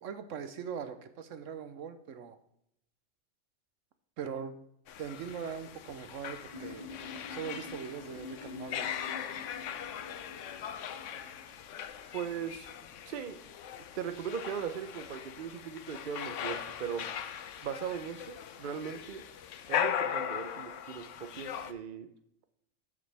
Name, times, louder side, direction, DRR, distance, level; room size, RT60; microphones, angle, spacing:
voice 1, 0.0-2.4 4.2-4.6 5.0-6.9 7.3-8.9, right 7 dB, 80° right, 10 dB, 1.1 m, -41 dB
sound 1, 4.9-21.7, left 9 dB, 75° left, 1.0 m, -39 dB
sound 2, 6.5-11.5, left 4 dB, 30° left, 0.9 m, -47 dB
voice 2, 12.1-12.7 13.1-13.4 14.0-17.1 17.6-19.2 19.7-22.1, right 7 dB, 45° right, 9 dB, 0.8 m, -38 dB
9.6 x 7.5 x 3.4 m, 0.76 s
omnidirectional pair, 1.3 m